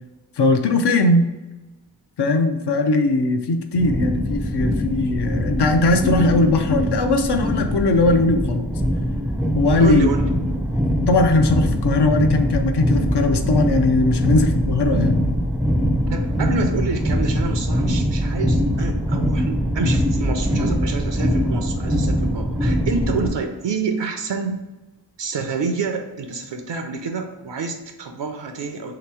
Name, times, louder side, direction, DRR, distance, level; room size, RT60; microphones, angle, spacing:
voice 1, 0.4-1.3 2.2-8.7 9.5-10.1 11.1-15.2, left 2 dB, 65° left, 7 dB, 0.6 m, -19 dB
sound 1, 3.7-23.3, equal, 5° right, 0.4 m, -22 dB
voice 2, 9.8-10.3 16.1-24.6 25.2-29.0, right 4 dB, 75° right, 5 dB, 0.5 m, -28 dB
3.3 x 2.9 x 4.6 m, 1.1 s
wide cardioid pair, 80°, 44 cm